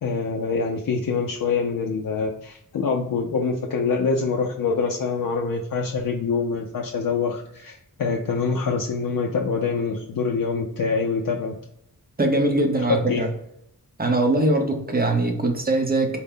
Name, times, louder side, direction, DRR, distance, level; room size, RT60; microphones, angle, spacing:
voice 1, 0.0-11.5 12.9-13.2, left 4 dB, 70° left, 1 dB, 0.5 m, -25 dB
voice 2, 12.2-13.3 14.0-16.2, right 2 dB, 25° right, 3 dB, 0.8 m, -21 dB
4.2 x 2.1 x 3.7 m, 0.73 s
wide cardioid pair, 90°, 35 cm